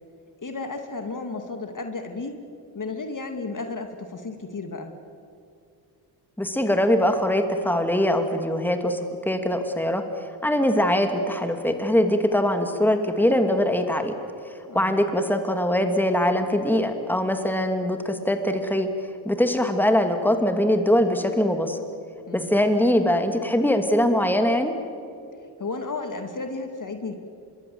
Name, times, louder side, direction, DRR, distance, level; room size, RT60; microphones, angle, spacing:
voice 1, 0.4-2.4 2.7-4.9 14.7-15.0 22.2-22.6 25.6-27.1, left 3 dB, 40° left, 6 dB, 2.5 m, -33 dB
voice 2, 6.4-10.0 10.4-14.1 14.7-18.9 19.2-21.8 22.3-24.7, left 1 dB, 5° left, 6 dB, 2.7 m, -22 dB
25.5 x 21.5 x 8.0 m, 2.5 s
supercardioid pair, 50°, 49 cm